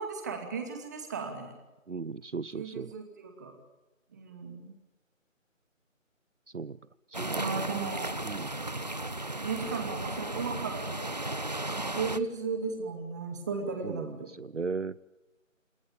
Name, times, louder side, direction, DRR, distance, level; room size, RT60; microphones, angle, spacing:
voice 1, 0.0-1.6 2.5-3.5 4.1-4.7 7.3-8.2 9.4-11.2 11.7-14.3, right 4 dB, 15° right, 5 dB, 2.4 m, -35 dB
voice 2, 1.9-2.9 6.5-6.8 7.1-7.7 8.2-8.5 13.8-15.0, right 4 dB, 60° right, 19 dB, 0.8 m, -37 dB
sound 1, 7.1-12.2, right 1 dB, 30° right, 0.9 m, -35 dB
28.5 x 18.5 x 8.6 m, 1.1 s
figure-of-eight pair, 160°, 40 cm